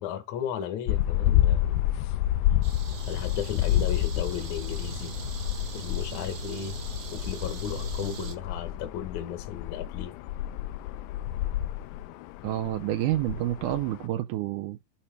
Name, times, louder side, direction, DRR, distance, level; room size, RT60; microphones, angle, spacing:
voice 1, 0.0-1.9 3.0-5.1 5.7-6.8 7.1-10.1, left 9 dB, 65° left, 2.0 m, -35 dB
sound 1, 0.9-14.1, left 13 dB, 85° left, 2.4 m, -29 dB
sound 2, 2.6-8.4, right 4 dB, 55° right, 1.7 m, -39 dB
voice 2, 12.4-14.8, right 14 dB, 85° right, 1.8 m, -29 dB
8.8 x 3.3 x 4.9 m
omnidirectional pair, 4.2 m